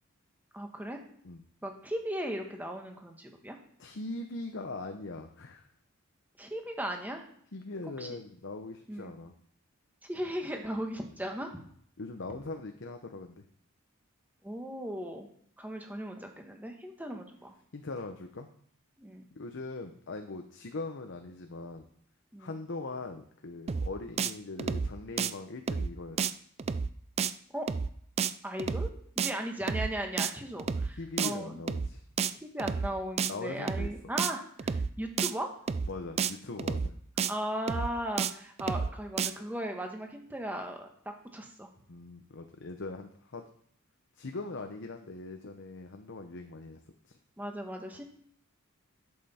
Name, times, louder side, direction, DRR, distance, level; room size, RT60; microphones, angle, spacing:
voice 1, 0.5-1.0 1.6-3.6 6.4-7.2 8.0-8.1 8.9-9.1 10.0-11.6 14.4-15.3 15.6-17.5 19.0-19.2 22.3-22.5 27.5-27.7 28.4-28.9 29.2-31.6 32.4-35.5 37.3-40.9 41.3-41.7 47.4-48.0, right 1 dB, 10° right, 3 dB, 1.3 m, -37 dB
voice 2, 3.8-5.7 7.5-9.3 12.0-13.4 17.7-18.5 19.3-21.9 22.4-26.3 31.0-32.0 33.3-33.9 35.9-36.9 41.9-43.4 44.2-47.2, left 3 dB, 60° left, 5 dB, 0.8 m, -41 dB
sound 1, 23.7-23.9 24.2-24.3 24.6-24.9 25.2-25.3 25.7-25.9 26.2-26.3 26.6-26.9 27.2-27.3 27.7-27.9 28.2-28.3 28.6-28.9 29.2-29.3 29.7-29.9 30.2-30.3 30.6-30.9 31.2-31.3 31.7-31.9 32.2-32.3 32.6-32.9 33.2-33.3 33.7-33.9 34.2-34.3 34.6-34.9 35.2-35.3 35.7-35.9 36.2-36.3 36.6-36.9 37.2-37.3 37.7-37.9 38.2-38.3 38.6-38.9 39.2-39.3, right 6 dB, 30° right, 0.3 m, -30 dB
11.0 x 7.6 x 4.3 m, 0.63 s
head